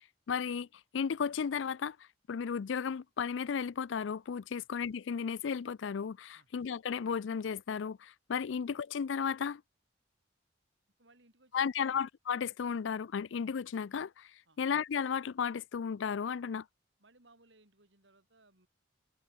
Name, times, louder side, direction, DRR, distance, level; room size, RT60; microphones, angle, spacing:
voice 1, 0.3-0.7 0.9-2.0 2.3-9.6 11.5-14.3 14.6-16.7, left 6 dB, 75° left, 0.4 m, -34 dB
voice 2, 11.0-12.0 14.4-14.6 17.0-18.7, right 2 dB, 70° right, 5.0 m, -65 dB
head